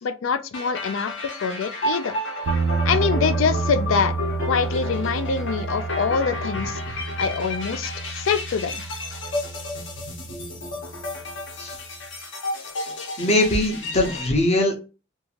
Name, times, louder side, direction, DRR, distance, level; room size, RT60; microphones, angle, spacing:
voice 1, 0.0-2.1 2.9-4.1 4.5-6.8 7.2-8.8, left 5 dB, 80° left, 0.4 m, -25 dB
sound 1, 0.5-14.3, left 2 dB, 65° left, 0.8 m, -32 dB
sound 2, 2.5-11.4, right 4 dB, 90° right, 0.3 m, -30 dB
voice 2, 13.2-14.8, left 1 dB, 35° left, 0.6 m, -21 dB
2.7 x 2.4 x 2.8 m
head